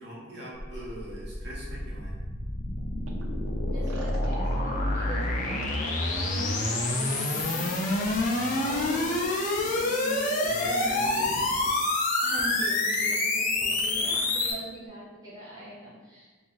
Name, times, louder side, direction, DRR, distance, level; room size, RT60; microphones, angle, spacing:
voice 1, 0.0-2.2 8.3-9.1 10.4-11.6, equal, 60° right, -5 dB, 0.9 m, -41 dB
sound 1, 0.6-14.5, left 2 dB, 40° left, 0.4 m, -27 dB
sound 2, 2.8-2.9 3.1-5.0 5.5-6.6 6.9-8.3 8.6-9.8 10.2-11.8 12.4-12.5 12.9-13.2 13.6-14.5 14.9-15.0, right 2 dB, 90° right, 0.5 m, -47 dB
voice 2, 3.7-7.8 8.2-11.2 12.2-16.3, right 1 dB, 20° right, -9 dB, 0.6 m, -41 dB
2.7 x 2.4 x 3.9 m, 1.3 s
head